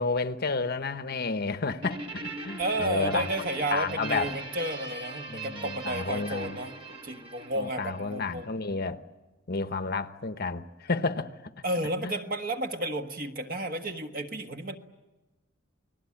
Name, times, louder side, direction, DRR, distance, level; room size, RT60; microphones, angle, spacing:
voice 1, 0.0-3.3 3.7-4.3 5.3-6.6 7.6-9.0 9.5-11.5 12.0-12.1, left 4 dB, 50° left, 1.0 m, -31 dB
Guitar, 1.8-8.5, right 3 dB, 25° right, 2.3 m, -40 dB
voice 2, 2.6-6.7 7.0-8.5 11.6-14.8, right 1 dB, 45° right, 1.5 m, -32 dB
29.0 x 20.5 x 8.6 m
head